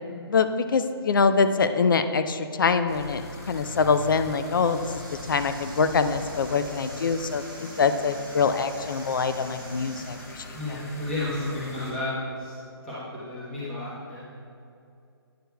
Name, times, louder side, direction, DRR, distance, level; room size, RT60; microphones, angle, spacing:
voice 1, 0.3-3.2 3.5-5.0 5.3-10.6, left 5 dB, 55° left, 10 dB, 0.4 m, -24 dB
sound 1, 2.9-11.9, left 1 dB, 35° left, 0.9 m, -42 dB
sound 2, 4.1-10.8, right 4 dB, 50° right, 1.0 m, -49 dB
voice 2, 10.5-12.6 12.8-14.4, left 1 dB, 5° left, -12 dB, 0.9 m, -32 dB
9.3 x 6.4 x 2.2 m, 2.5 s
hypercardioid pair, 170°, 13 cm